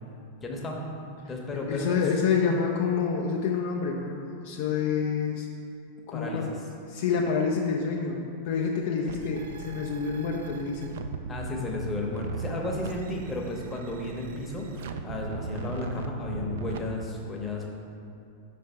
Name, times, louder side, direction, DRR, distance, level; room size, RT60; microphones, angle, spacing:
voice 1, 0.4-0.8 1.3-2.0 6.1-6.4 9.0-9.1 11.3-17.7, left 2 dB, 15° left, -1 dB, 0.9 m, -33 dB
voice 2, 1.7-5.5 6.1-6.6 6.9-11.0, left 5 dB, 50° left, 0 dB, 0.4 m, -28 dB
sound 1, 9.1-16.8, right 5 dB, 60° right, 0.3 m, -38 dB
5.3 x 3.4 x 5.5 m, 2.6 s
figure-of-eight pair, 90°, 0 cm